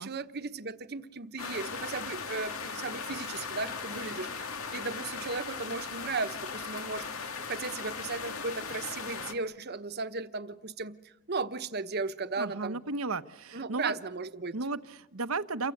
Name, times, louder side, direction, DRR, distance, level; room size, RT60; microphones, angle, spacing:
voice 1, 0.0-12.8 13.5-14.5, right 3 dB, 50° right, 10 dB, 1.1 m, -36 dB
sound 1, 1.4-9.3, left 5 dB, 85° left, 2.2 m, -38 dB
voice 2, 12.4-13.9 14.5-15.7, right 3 dB, 85° right, 11 dB, 1.2 m, -34 dB
29.5 x 24.0 x 8.0 m, 0.98 s
head